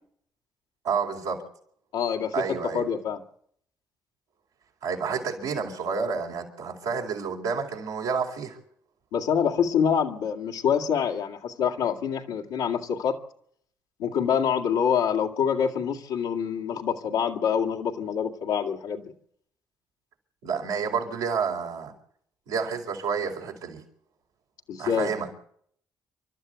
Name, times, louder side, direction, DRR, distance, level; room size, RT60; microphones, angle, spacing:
voice 1, 0.8-1.4 2.3-2.8 4.8-8.6 20.4-21.9 22.5-23.8 24.8-25.3, right 5 dB, 90° right, -3 dB, 4.3 m, -29 dB
voice 2, 1.9-3.2 9.1-13.2 14.0-19.1 24.7-25.1, left 7 dB, 85° left, -1 dB, 1.9 m, -26 dB
28.0 x 12.5 x 8.1 m, 0.66 s
hypercardioid pair, 50°, 8 cm